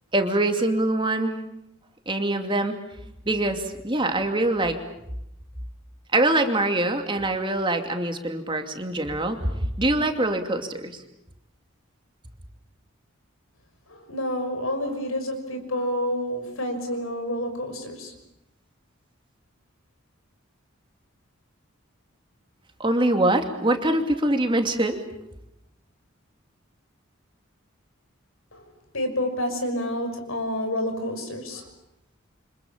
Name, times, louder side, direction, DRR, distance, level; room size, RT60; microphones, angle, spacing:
voice 1, 0.1-1.4 2.1-2.8 3.3-4.8 6.1-9.5 9.8-11.0 22.8-25.0, right 1 dB, 25° right, 5 dB, 2.5 m, -24 dB
voice 2, 13.9-18.1 28.5-31.7, left 1 dB, 80° left, 6 dB, 6.3 m, -29 dB
29.0 x 26.0 x 7.4 m, 0.85 s
head